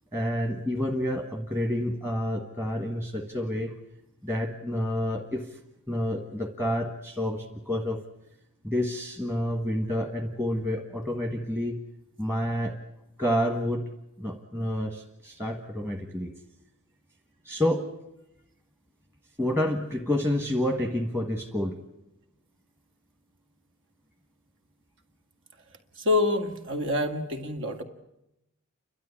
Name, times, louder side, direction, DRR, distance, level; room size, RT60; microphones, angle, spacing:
voice 1, 0.1-3.7 4.2-5.6 5.9-8.0 8.6-11.8 12.2-12.7 13.2-13.9 14.2-16.3 17.4-17.9 19.4-21.8, left 1 dB, 10° right, 3 dB, 1.4 m, -29 dB
voice 2, 26.0-27.8, left 2 dB, 60° right, 5 dB, 2.2 m, -26 dB
30.0 x 12.5 x 10.0 m, 0.89 s
head